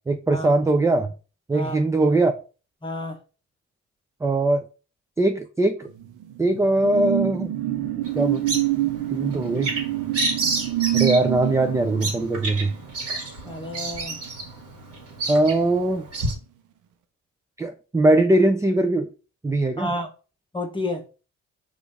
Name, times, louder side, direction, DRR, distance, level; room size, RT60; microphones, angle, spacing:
voice 1, 0.1-1.1 1.5-2.3 4.2-4.6 5.2-5.9 6.4-7.5 8.2-8.4 9.1-9.7 10.9-12.7 15.3-16.0 17.6-19.1 19.4-19.9, right 2 dB, 10° right, 0.4 m, -21 dB
voice 2, 2.8-3.2 13.4-14.2 19.8-20.1 20.5-21.1, left 1 dB, 15° left, 1.0 m, -30 dB
sound 1, 5.9-14.9 15.3-15.5, right 14 dB, 85° right, 0.7 m, -27 dB
Bird vocalization bird call bird song, 8.0-16.3, right 2 dB, 50° right, 1.7 m, -31 dB
4.9 x 2.6 x 3.5 m
cardioid pair, 90°, 30 cm